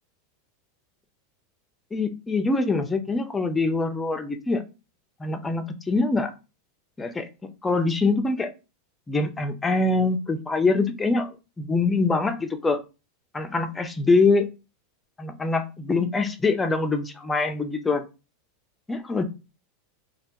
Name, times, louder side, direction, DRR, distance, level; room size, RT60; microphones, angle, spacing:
voice 1, 1.9-4.6 5.2-6.3 7.0-7.3 7.6-8.5 9.1-11.3 11.6-12.8 13.3-14.5 15.2-18.0 18.9-19.2, left 3 dB, 10° left, 7 dB, 0.4 m, -24 dB
3.2 x 2.2 x 2.8 m, 0.29 s
supercardioid pair, 145°, 0 cm